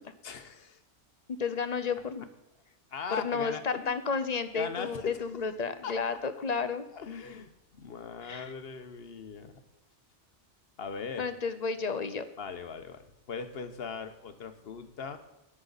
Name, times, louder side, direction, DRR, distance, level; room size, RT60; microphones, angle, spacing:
voice 1, 0.2-0.8 2.9-4.0 4.5-5.2 5.8-5.9 6.5-6.7 6.9-9.5 10.8-11.3 12.4-15.2, left 6 dB, 60° left, 9 dB, 1.2 m, -39 dB
voice 2, 1.4-2.3 3.2-6.9 8.2-8.5 11.2-12.3, left 5 dB, 40° left, 11 dB, 0.7 m, -32 dB
18.5 x 6.3 x 4.0 m, 0.96 s
omnidirectional pair, 1.2 m